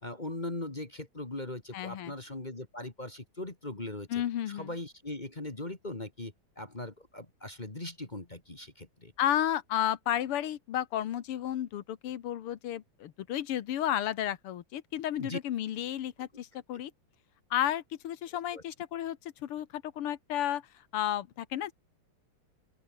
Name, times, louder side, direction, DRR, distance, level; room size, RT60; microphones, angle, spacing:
voice 1, 0.0-9.1 15.2-15.4 18.5-18.6, left 2 dB, 20° left, 2.1 m, -40 dB
voice 2, 1.7-2.1 4.1-4.7 9.2-16.9 17.5-20.6 20.9-21.7, left 11 dB, 90° left, 2.1 m, -32 dB
open air
omnidirectional pair, 2.4 m